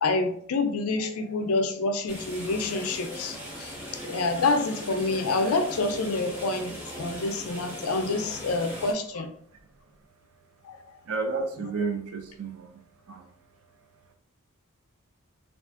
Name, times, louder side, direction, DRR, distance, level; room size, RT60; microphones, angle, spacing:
voice 1, 0.0-3.7 4.0-9.3 10.7-10.8, left 3 dB, 80° left, 7 dB, 0.5 m, -27 dB
sound 1, 2.1-8.9, equal, 10° right, 1.0 m, -39 dB
voice 2, 11.1-12.8 13.1-13.3, right 4 dB, 75° right, 5 dB, 0.5 m, -31 dB
3.4 x 2.4 x 2.4 m, 0.64 s
head